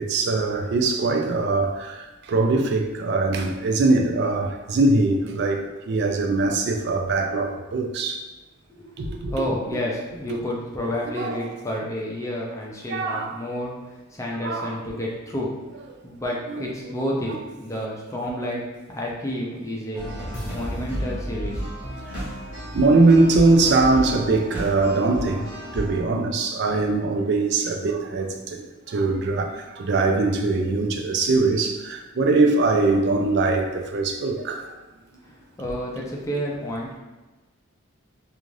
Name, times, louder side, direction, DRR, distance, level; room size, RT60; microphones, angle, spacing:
voice 1, 0.0-8.2 9.0-9.3 10.3-10.4 11.2-11.4 12.9-13.3 14.4-14.8 16.5-16.6 22.7-34.8, right 3 dB, 50° right, 3 dB, 0.3 m, -22 dB
voice 2, 8.8-15.6 16.0-18.6 18.9-20.0 20.5-21.6 35.6-37.0, equal, 15° left, -3 dB, 0.4 m, -30 dB
sound 1, 19.9-26.0, equal, 10° right, 0.9 m, -32 dB
2.5 x 2.4 x 3.1 m, 1.2 s
head